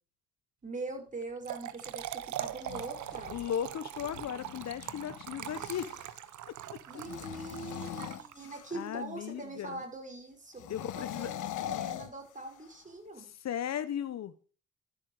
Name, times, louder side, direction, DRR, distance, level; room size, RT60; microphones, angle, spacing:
voice 1, 0.6-3.4 6.6-10.6 10.9-13.3, right 2 dB, 25° right, 3 dB, 5.9 m, -42 dB
Trickle dribble / Fill (with liquid), 1.2-8.7, right 12 dB, 70° right, 1.1 m, -42 dB
sound 1, 2.4-6.2 6.9-9.0 10.5-12.8, left 11 dB, 80° left, 1.4 m, -42 dB
voice 2, 3.3-5.9 6.5-6.6 8.7-9.8 10.7-11.3 13.4-14.3, left 9 dB, 60° left, 14 dB, 1.2 m, -36 dB
12.5 x 8.5 x 6.7 m, 0.37 s
cardioid pair, 90°, 30 cm